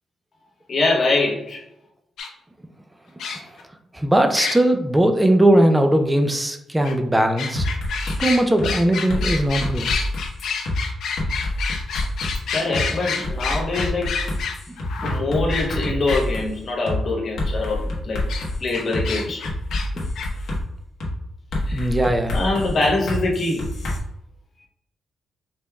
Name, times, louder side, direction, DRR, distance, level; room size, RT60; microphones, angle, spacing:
voice 1, 0.7-1.6 12.5-14.1 15.0-18.2 18.6-19.4 21.7-21.9 22.3-23.6, left 2 dB, 40° left, -2 dB, 1.0 m, -23 dB
sound 1, 2.2-2.3 3.2-3.6 4.3-4.6 6.8-6.9 7.4-16.2 18.3-18.4 18.7-19.9 20.2-20.3, left 5 dB, 80° left, 0.6 m, -28 dB
voice 2, 3.9-7.7 8.2-9.9 15.0-15.1 21.7-22.4, right 1 dB, 10° right, 6 dB, 0.4 m, -19 dB
sound 2, 7.6-8.2 8.6-8.7 9.1-10.8 11.2-12.4 12.7-12.8 13.2-16.5 16.9-17.0 17.4-19.0 19.4-20.6 21.0-21.1 21.5-24.0, left 1 dB, 60° left, 1.1 m, -27 dB
5.2 x 3.3 x 2.3 m, 0.84 s
wide cardioid pair, 155°, 0 cm